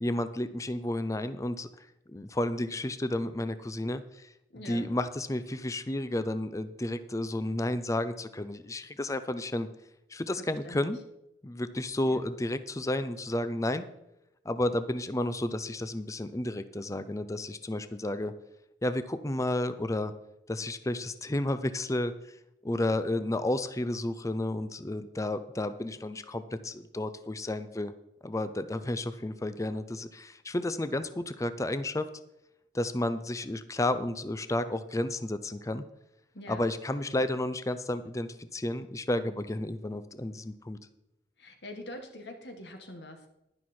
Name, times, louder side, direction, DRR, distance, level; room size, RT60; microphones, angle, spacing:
voice 1, 0.0-1.7 2.1-4.3 4.7-9.7 10.1-11.0 11.4-13.9 14.4-18.3 18.8-20.1 20.5-22.4 22.6-27.9 28.2-32.1 32.7-35.8 36.5-40.8, left 1 dB, 20° left, 12 dB, 0.6 m, -32 dB
voice 2, 4.5-4.9 10.4-10.9 12.1-12.3 36.3-36.7 41.4-43.3, left 1 dB, 75° left, 5 dB, 1.8 m, -44 dB
11.0 x 11.0 x 4.4 m, 0.86 s
head